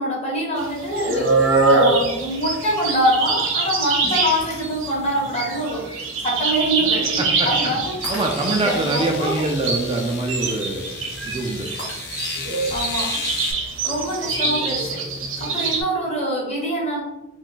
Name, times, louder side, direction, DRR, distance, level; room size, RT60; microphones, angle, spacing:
voice 1, 0.0-8.0 8.6-9.5 12.7-13.2 13.8-15.0 15.4-17.0, equal, 35° left, -3 dB, 1.0 m, -24 dB
sound 1, 0.6-15.8, right 3 dB, 85° right, 0.7 m, -24 dB
Shatter, 4.4-5.1 5.7-5.8 8.0-8.8 11.8-12.5, left 1 dB, 70° left, 1.0 m, -38 dB
voice 2, 7.2-7.5 8.1-10.9 11.3-11.7, right 2 dB, 25° right, 1 dB, 0.3 m, -24 dB
sound 2, 8.0-13.5, left 5 dB, 55° left, 0.4 m, -35 dB
2.5 x 2.3 x 3.7 m, 1.0 s
head